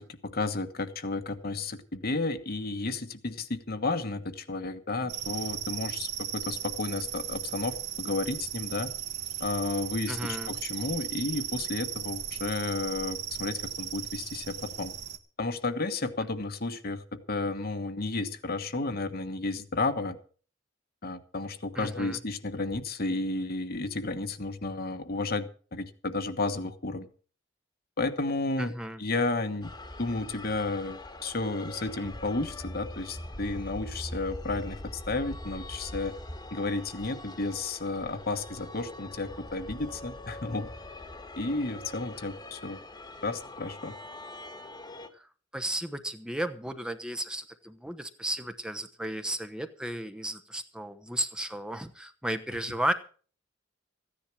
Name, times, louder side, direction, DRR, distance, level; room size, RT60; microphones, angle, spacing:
voice 1, 0.0-8.9 9.4-14.9 15.4-20.2 21.0-27.1 28.0-28.7 29.0-29.7 30.0-36.1 36.5-40.7 41.4-42.8 43.2-43.9, left 3 dB, 55° left, 8 dB, 1.3 m, -32 dB
sound 1, 5.1-15.2, right 10 dB, 60° right, 1.3 m, -36 dB
voice 2, 10.1-10.5 21.7-22.2 28.6-29.0 45.1-45.3 45.5-52.9, right 1 dB, 5° right, 9 dB, 0.9 m, -34 dB
sound 2, 29.6-45.1, left 1 dB, 20° left, 1.4 m, -43 dB
15.0 x 10.0 x 6.2 m, 0.41 s
head